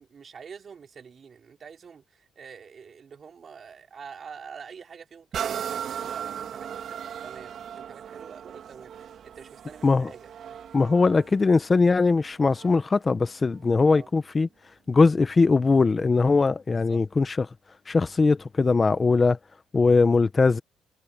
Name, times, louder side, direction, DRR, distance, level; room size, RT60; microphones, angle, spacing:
voice 1, 0.0-9.0 9.2-10.6 13.9-14.1 16.7-17.0, right 6 dB, 45° right, 4.2 m, -46 dB
sound 1, 5.3-12.9 13.5-13.6, right 8 dB, 65° right, 2.5 m, -37 dB
voice 2, 10.7-14.5 14.9-17.5 17.9-19.4 19.7-20.6, left 4 dB, 30° left, 1.2 m, -21 dB
cardioid pair, 90°, 0 cm